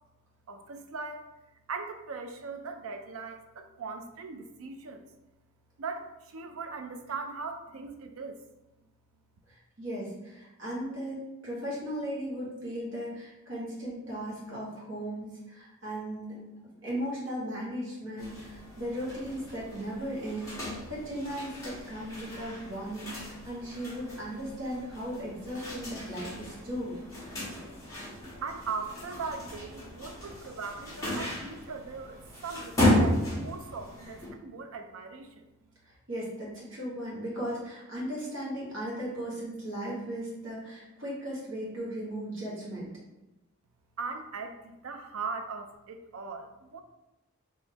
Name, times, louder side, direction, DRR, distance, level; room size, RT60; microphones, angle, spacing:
voice 1, 0.5-1.3 1.7-5.1 5.8-8.4 28.4-35.5 44.0-46.8, right 4 dB, 75° right, 6 dB, 0.4 m, -39 dB
voice 2, 9.5-16.4 16.8-27.0 35.8-42.9, equal, 60° right, -6 dB, 1.4 m, -37 dB
sound 1, 18.2-34.3, left 1 dB, 15° left, 1.3 m, -34 dB
3.9 x 3.0 x 2.8 m, 0.99 s
head